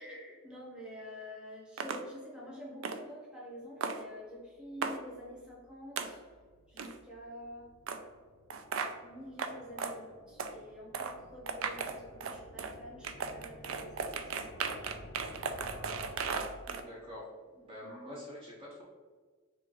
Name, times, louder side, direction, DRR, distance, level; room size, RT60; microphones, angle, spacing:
voice 1, 0.0-6.2 6.7-7.7 9.0-14.7 15.9-16.2, equal, 5° right, -5 dB, 1.0 m, -48 dB
sound 1, 1.8-2.0 2.8-3.0 3.8-4.0 4.8-5.0 6.0-6.1 6.8-7.0 7.9-8.0 8.5-8.9 9.4-9.5 9.8-9.9 10.4-10.5 10.9-11.1 11.5-12.7 13.0-16.8, right 5 dB, 75° right, 0.4 m, -36 dB
sound 2, 4.3-17.2, left 1 dB, 85° left, 0.5 m, -54 dB
voice 2, 16.7-18.8, left 1 dB, 25° right, -5 dB, 0.8 m, -46 dB
4.5 x 2.4 x 3.7 m, 1.5 s
head